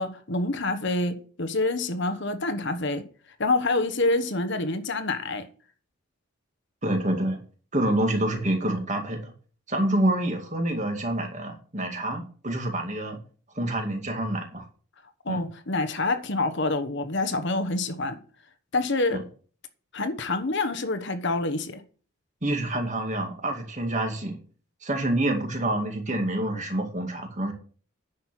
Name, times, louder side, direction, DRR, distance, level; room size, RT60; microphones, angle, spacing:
voice 1, 0.0-3.0 3.4-5.5 15.2-18.2 18.7-19.2 19.9-21.8, left 2 dB, 55° left, 1.2 m, -27 dB
voice 2, 6.8-7.4 7.7-9.3 9.7-13.2 13.6-14.7 15.3-15.4 19.1-19.2 22.4-24.4 24.8-27.5, right 1 dB, 35° right, 2.2 m, -27 dB
9.9 x 6.6 x 6.1 m
head